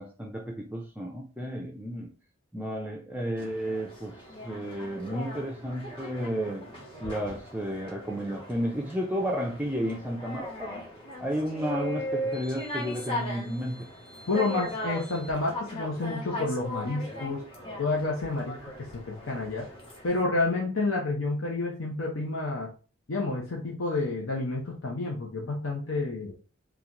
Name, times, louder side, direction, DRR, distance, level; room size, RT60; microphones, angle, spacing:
voice 1, 0.0-2.1 2.5-4.2 4.4-6.6 7.0-10.9 11.2-13.9, equal, 5° right, 0 dB, 0.4 m, -32 dB
sound 1, 3.4-20.2, left 1 dB, 25° left, 1.0 m, -39 dB
voice 2, 14.3-17.4 17.8-19.8 20.0-22.7 23.1-26.3, left 3 dB, 85° left, -2 dB, 0.7 m, -29 dB
3.9 x 2.4 x 2.8 m, 0.35 s
head